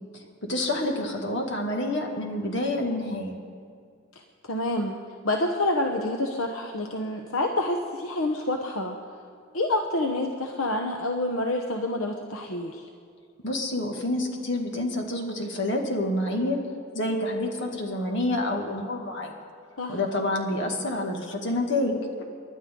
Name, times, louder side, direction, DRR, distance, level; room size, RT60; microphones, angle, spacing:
voice 1, 0.4-3.4 13.4-16.6 16.9-19.3 19.9-22.0, left 1 dB, 60° left, 1 dB, 2.2 m, -28 dB
voice 2, 4.5-4.9 5.2-9.0 9.5-12.8 19.8-20.0, left 1 dB, 80° left, 3 dB, 1.0 m, -27 dB
29.5 x 11.5 x 3.8 m, 2.2 s
head